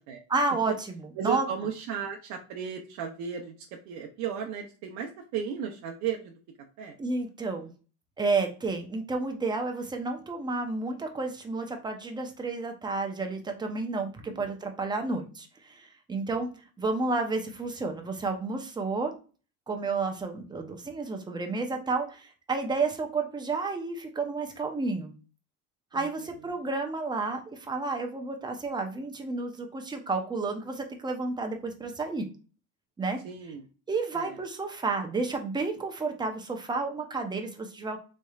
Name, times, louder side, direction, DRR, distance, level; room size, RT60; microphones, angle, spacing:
voice 1, 0.3-1.5 7.0-7.7 8.2-16.5 16.8-19.1 19.7-25.1 25.9-32.3 33.0-33.2 33.9-38.0, right 3 dB, 15° right, 4 dB, 0.6 m, -31 dB
voice 2, 1.2-6.3 6.8-7.0 14.2-14.4 25.9-26.1 26.5-26.6 33.2-33.6 34.1-34.4, right 8 dB, 70° right, 2 dB, 0.7 m, -35 dB
4.2 x 3.2 x 2.3 m, 0.36 s
cardioid pair, 140°, 31 cm